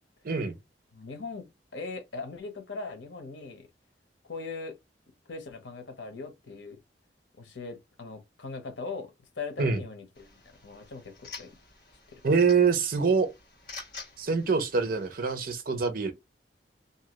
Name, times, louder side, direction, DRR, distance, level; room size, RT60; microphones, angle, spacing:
voice 1, 0.2-0.6 9.6-9.8 12.2-13.3 14.2-16.1, right 5 dB, 50° right, 0.6 m, -25 dB
voice 2, 0.9-1.4 1.7-3.7 4.2-4.7 5.3-6.8 7.4-11.5 12.1-12.2, left 4 dB, 90° left, 0.8 m, -40 dB
sound 1, 10.1-15.5, left 4 dB, 50° left, 1.4 m, -48 dB
2.7 x 2.3 x 2.9 m
head